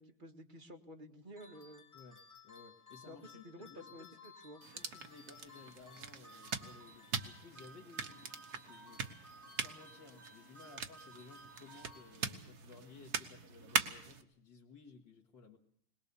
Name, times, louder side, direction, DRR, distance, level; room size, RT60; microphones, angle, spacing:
voice 1, 0.0-1.9 3.1-4.6, equal, 25° right, 3 dB, 1.8 m, -52 dB
sound 1, 1.4-12.6, left 1 dB, 5° left, 4.0 m, -57 dB
voice 2, 1.9-4.2 4.7-9.0 9.5-15.6, left 4 dB, 60° left, -1 dB, 2.6 m, -57 dB
sound 2, 4.6-14.2, right 6 dB, 50° right, 1.7 m, -42 dB
22.0 x 20.5 x 7.0 m, 0.66 s
omnidirectional pair, 2.3 m